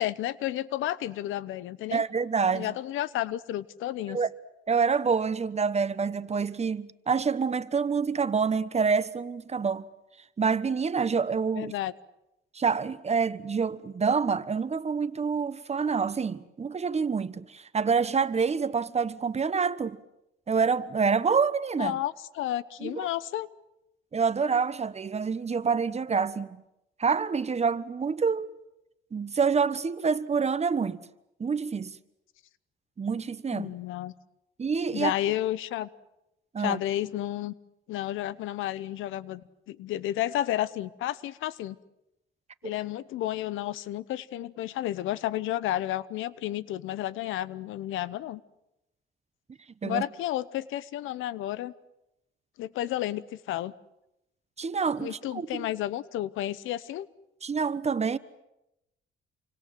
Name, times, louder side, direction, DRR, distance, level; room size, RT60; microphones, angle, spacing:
voice 1, 0.0-2.0 2.5-4.2 11.6-11.9 21.8-23.5 33.5-34.1 34.9-35.9 36.6-37.5 37.9-41.8 42.6-48.4 49.8-51.7 52.6-53.7 55.0-57.1, left 13 dB, 90° left, 0.9 m, -31 dB
voice 2, 1.9-2.7 4.1-4.3 4.7-9.9 10.4-11.7 12.5-20.0 20.5-22.0 22.8-23.1 24.1-26.6 27.0-28.5 29.1-31.0 31.4-32.0 33.0-33.7 34.6-35.1 36.5-36.8 42.6-42.8 49.8-50.0 54.6-55.7 57.4-58.2, right 5 dB, 35° right, 1.2 m, -27 dB
28.5 x 25.0 x 7.7 m
cardioid pair, 90°, 20 cm